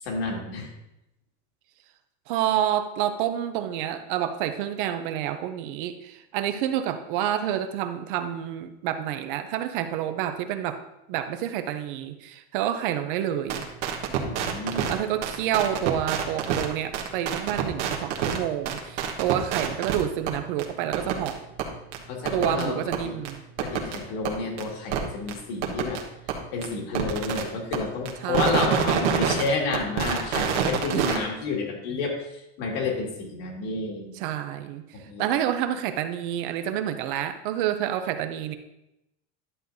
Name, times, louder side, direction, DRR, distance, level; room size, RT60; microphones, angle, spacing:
voice 1, 0.0-0.7 14.2-14.9 22.1-22.8 23.0-23.1 23.6-26.0 26.5-34.1 34.9-35.4, left 4 dB, 60° left, 0 dB, 2.0 m, -30 dB
voice 2, 2.3-10.8 11.1-13.7 14.9-21.4 22.3-23.4 28.2-28.7 30.9-31.1 34.2-38.6, right 11 dB, 50° right, 9 dB, 0.6 m, -28 dB
sound 1, 13.5-14.9 15.2-16.7 16.9-18.4 18.6-20.0 20.3-20.4 20.6-20.7 20.9-21.3 21.6-21.7 21.9-22.0 22.2-22.6 22.9-23.0 23.2-23.3 23.6-24.0 24.2-24.3 24.6-24.7 24.9-25.0 25.3-25.4 25.6-26.0 26.3-26.4 26.6-26.7 26.9-27.4 27.7-27.8 28.1-29.5 29.7-31.2, right 9 dB, 75° right, 1.4 m, -26 dB
11.0 x 7.6 x 2.7 m, 0.88 s
supercardioid pair, 175°, 34 cm